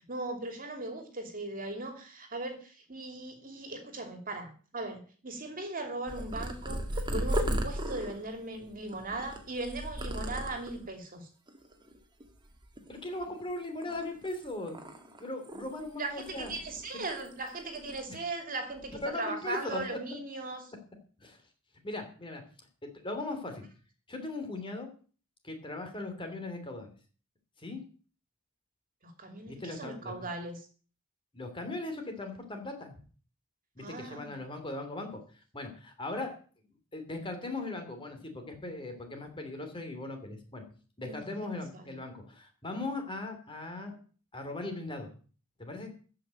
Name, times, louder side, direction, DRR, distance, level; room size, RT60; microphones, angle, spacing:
voice 1, 0.1-11.3 16.0-20.7 29.0-30.7 33.8-34.4 41.0-41.9, right 2 dB, 40° right, 6 dB, 2.8 m, -39 dB
Purr, 6.1-10.9 11.5-12.0 12.2-13.4 13.8-15.9 16.2-17.5 17.7-18.1 18.7-19.0, equal, 20° right, 2.0 m, -36 dB
voice 2, 12.9-14.8 15.2-16.5 19.0-19.8 21.2-21.4 21.8-22.4 22.8-23.6 24.1-24.9 25.4-26.9 27.6-27.8 29.5-30.3 31.3-32.9 33.7-35.2 35.5-36.3 36.9-40.6 41.0-44.0 44.3-45.1 45.6-45.9, left 2 dB, 25° left, 5 dB, 3.1 m, -38 dB
14.5 x 5.9 x 8.9 m, 0.40 s
head